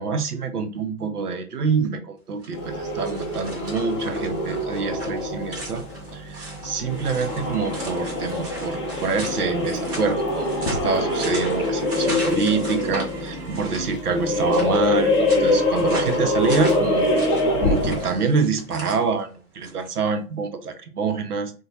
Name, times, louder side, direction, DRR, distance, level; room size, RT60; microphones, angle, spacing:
voice 1, 0.0-5.8 6.1-17.1 17.6-21.5, right 4 dB, 80° right, 0.7 m, -26 dB
sound 1, 2.3-19.9, right 1 dB, 40° right, 1.2 m, -39 dB
sound 2, 2.5-18.2, left 2 dB, 20° left, 0.4 m, -25 dB
sound 3, 6.9-14.0, right 1 dB, 15° right, 0.9 m, -39 dB
2.5 x 2.2 x 3.0 m
figure-of-eight pair, 110°, 45 cm